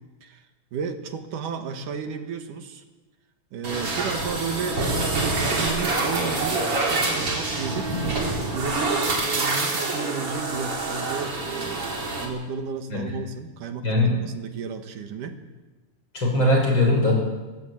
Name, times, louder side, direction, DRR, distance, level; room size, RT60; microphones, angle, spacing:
voice 1, 0.7-2.8 3.5-8.0 8.5-11.9 12.2-15.4, right 6 dB, 80° right, 6 dB, 3.1 m, -33 dB
sound 1, 3.6-12.2, right 2 dB, 45° right, 4.7 m, -26 dB
voice 2, 13.8-14.2 16.1-17.2, left 1 dB, 35° left, 0 dB, 7.1 m, -20 dB
22.0 x 17.5 x 8.6 m, 1.2 s
omnidirectional pair, 3.7 m